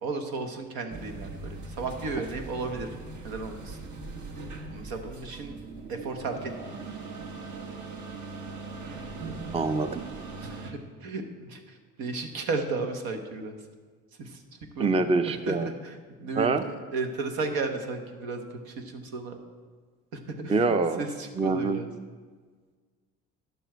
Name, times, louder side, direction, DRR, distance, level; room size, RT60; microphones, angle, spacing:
voice 1, 0.0-2.9 3.2-3.8 4.7-5.5 5.9-6.8 10.4-13.6 14.2-14.4 14.7-19.4 20.1-21.9, right 3 dB, 80° right, 5 dB, 1.2 m, -34 dB
sound 1, 0.9-10.7, right 3 dB, 55° right, 1.3 m, -40 dB
voice 2, 9.5-10.0 14.8-15.7 16.4-16.6 20.5-21.0 21.4-21.8, right 3 dB, 15° right, 11 dB, 0.5 m, -25 dB
10.5 x 7.1 x 4.5 m, 1.5 s
supercardioid pair, 75°, 35 cm